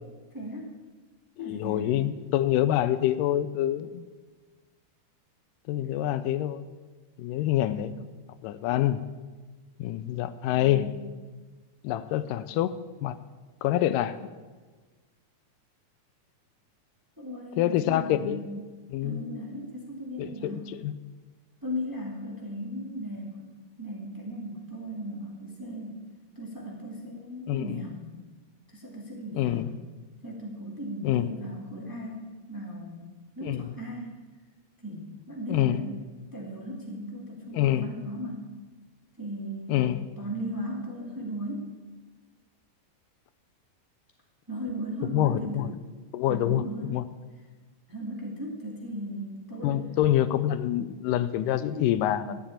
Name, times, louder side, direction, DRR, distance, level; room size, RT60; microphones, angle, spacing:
voice 1, 0.3-0.7 1.4-1.9 10.5-11.0 17.2-18.6 19.0-20.7 21.6-23.5 23.8-26.0 26.3-28.1 28.7-29.7 30.2-33.0 33.3-34.2 34.8-36.0 36.3-38.4 39.2-39.9 40.2-41.7 44.5-45.7 46.3-47.0 47.9-50.0 51.7-51.9, equal, 10° right, -1 dB, 1.5 m, -37 dB
voice 2, 1.4-4.1 5.7-6.7 7.2-8.1 8.4-9.0 9.8-10.9 11.8-12.7 13.0-13.2 13.6-14.2 17.6-18.4 18.9-19.2 20.2-21.0 27.5-27.8 29.3-29.7 31.0-31.3 33.4-33.7 35.5-35.9 37.5-37.9 39.7-40.1 45.1-45.7 46.1-47.0 49.6-52.4, left 12 dB, 85° left, 13 dB, 2.1 m, -26 dB
13.0 x 7.5 x 8.6 m, 1.3 s
omnidirectional pair, 3.8 m